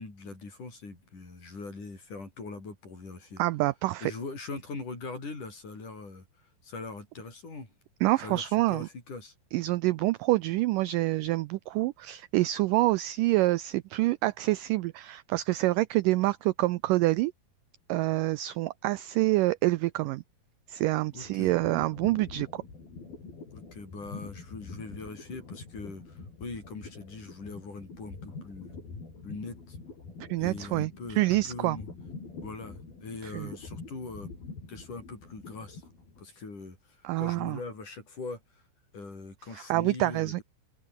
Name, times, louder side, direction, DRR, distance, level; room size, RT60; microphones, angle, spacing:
voice 1, 0.0-3.4 4.0-7.7 8.2-9.3 21.1-21.5 23.5-28.8 29.2-29.8 30.4-31.9 32.4-34.3 34.7-35.8 36.2-38.4 38.9-40.4, left 3 dB, 50° left, 9.1 m, -42 dB
voice 2, 3.4-4.1 8.0-8.9 9.5-17.3 17.9-20.2 20.7-22.6 30.3-30.9 31.2-31.8 33.2-33.5 37.0-37.6 39.5-40.4, right 18 dB, 85° right, 1.9 m, -27 dB
sound 1, 20.8-36.3, left 4 dB, 65° left, 9.9 m, -45 dB
open air
omnidirectional pair, 4.5 m